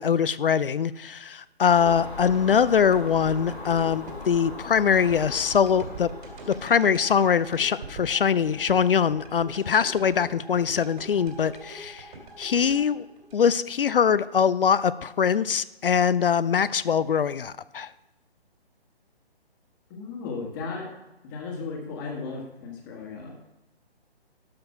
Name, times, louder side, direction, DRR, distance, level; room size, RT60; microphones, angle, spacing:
voice 1, 0.0-6.1 6.5-12.1 12.4-13.1 13.3-17.9, left 7 dB, 60° left, 17 dB, 0.4 m, -23 dB
Car passing by / Engine, 1.7-6.7, left 2 dB, 85° left, 3.6 m, -40 dB
sound 1, 1.8-13.9 14.4-14.5, right 2 dB, 50° right, 2.5 m, -43 dB
voice 2, 19.9-20.9 21.2-23.4, left 4 dB, 20° left, 1 dB, 1.5 m, -35 dB
12.5 x 4.7 x 5.8 m, 0.98 s
figure-of-eight pair, 140°, 31 cm